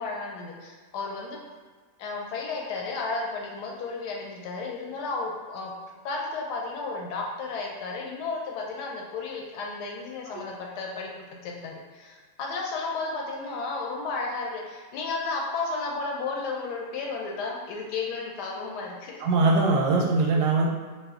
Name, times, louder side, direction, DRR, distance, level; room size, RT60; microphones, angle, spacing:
voice 1, 0.0-1.4 2.0-5.7 6.0-19.2, left 3 dB, 90° left, -1 dB, 1.2 m, -33 dB
voice 2, 19.2-20.7, right 3 dB, 80° right, -1 dB, 1.2 m, -21 dB
3.0 x 2.1 x 3.5 m, 1.5 s
omnidirectional pair, 1.7 m